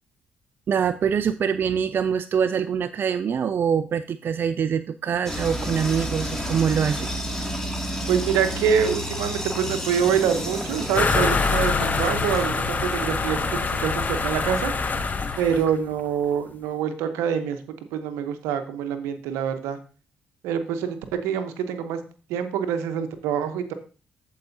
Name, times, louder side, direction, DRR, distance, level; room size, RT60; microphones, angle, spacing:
voice 1, 0.7-7.1, right 7 dB, 50° right, 11 dB, 0.4 m, -24 dB
sound 1, 5.3-15.7, equal, 10° left, 2.2 m, -32 dB
voice 2, 8.1-14.7 15.4-17.6 17.9-19.8 20.4-22.0 22.3-23.7, right 8 dB, 80° right, 8 dB, 0.9 m, -25 dB
sound 2, 10.9-15.8, left 4 dB, 40° left, 0.9 m, -25 dB
14.0 x 4.8 x 2.7 m, 0.36 s
hypercardioid pair, 45°, 4 cm